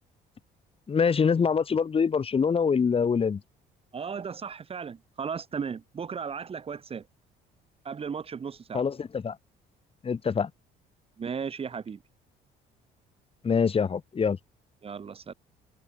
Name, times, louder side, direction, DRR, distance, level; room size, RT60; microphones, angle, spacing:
voice 1, 0.9-3.4 8.7-9.4 10.0-10.5 13.4-14.4, left 6 dB, 35° left, 5.4 m, -24 dB
voice 2, 3.9-7.0 7.8-8.8 11.2-12.0 14.8-15.3, right 6 dB, 35° right, 2.8 m, -35 dB
cardioid pair, 110°, 17 cm